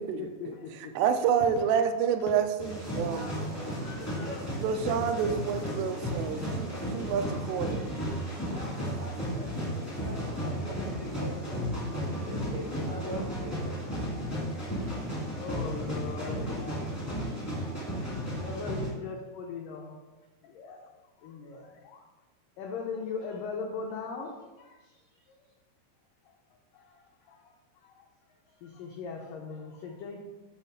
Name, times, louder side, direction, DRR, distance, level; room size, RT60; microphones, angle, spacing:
voice 1, 0.2-0.9 3.1-3.2 14.1-14.4 14.6-17.8 18.4-19.9 20.4-20.9 21.2-22.0 22.6-24.9 25.3-25.4 26.3-26.4 26.7-28.1 28.6-30.2, left 5 dB, 85° left, 0 dB, 1.8 m, -40 dB
voice 2, 1.0-3.3 4.6-7.8, right 7 dB, 90° right, 8 dB, 2.7 m, -28 dB
sound 1, 2.6-18.9, equal, 25° left, 0.3 m, -34 dB
voice 3, 3.1-4.4 4.6-4.7 8.5-11.6 11.9-13.7, equal, 75° right, -4 dB, 1.4 m, -43 dB
8.6 x 3.2 x 5.6 m, 1.2 s
omnidirectional pair, 4.7 m